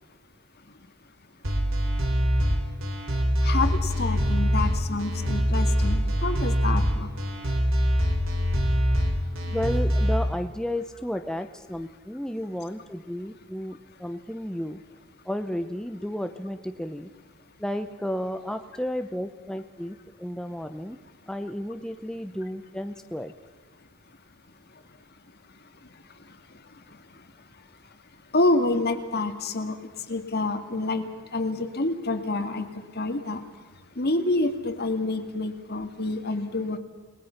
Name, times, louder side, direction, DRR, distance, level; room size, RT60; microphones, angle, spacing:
sound 1, 1.4-10.2, equal, 70° right, 4.1 m, -24 dB
voice 1, 3.4-7.1 28.3-29.8 30.1-31.0 31.3-32.7 33.0-33.4 34.0-36.8, left 2 dB, 50° left, 7 dB, 2.1 m, -27 dB
voice 2, 9.5-14.8 15.2-17.1 17.6-21.0 21.3-23.3, equal, 5° left, 7 dB, 0.7 m, -32 dB
30.0 x 19.5 x 5.9 m, 1.3 s
head